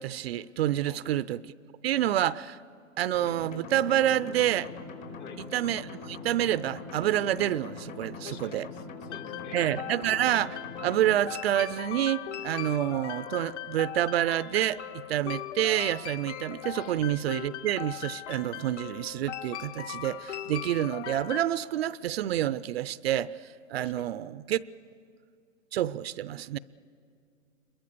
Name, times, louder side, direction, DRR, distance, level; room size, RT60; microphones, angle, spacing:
voice 1, 0.0-1.4 1.8-2.6 3.0-4.7 5.5-8.7 9.5-23.3 23.7-24.6 25.7-26.6, right 12 dB, 50° right, 0.5 m, -28 dB
sound 1, 3.1-11.1, left 4 dB, 75° left, 4.7 m, -42 dB
voice 2, 5.1-5.4 8.2-9.6 16.8-17.0 23.8-24.2, left 7 dB, 25° left, 0.7 m, -48 dB
sound 2, 9.1-21.4, left 10 dB, 55° left, 1.7 m, -39 dB
27.0 x 22.5 x 6.8 m
hypercardioid pair, 140°, 41 cm